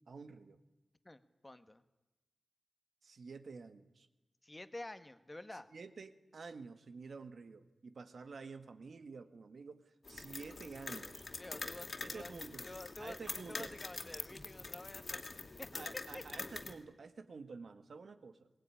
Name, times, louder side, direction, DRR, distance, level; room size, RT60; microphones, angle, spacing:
voice 1, 0.1-0.6 3.0-4.1 5.5-9.8 10.1-11.3 12.0-12.6 13.0-13.7 15.7-18.5, right 4 dB, 70° right, 10 dB, 1.8 m, -50 dB
voice 2, 1.0-1.8 4.4-5.7 11.4-12.3 12.6-15.2 15.6-15.7 16.1-16.2, left 2 dB, 20° left, 12 dB, 1.4 m, -49 dB
sound 1, 10.1-16.7, left 3 dB, 50° left, 2.7 m, -45 dB
23.0 x 19.5 x 10.0 m, 1.1 s
wide cardioid pair, 115°, 0 cm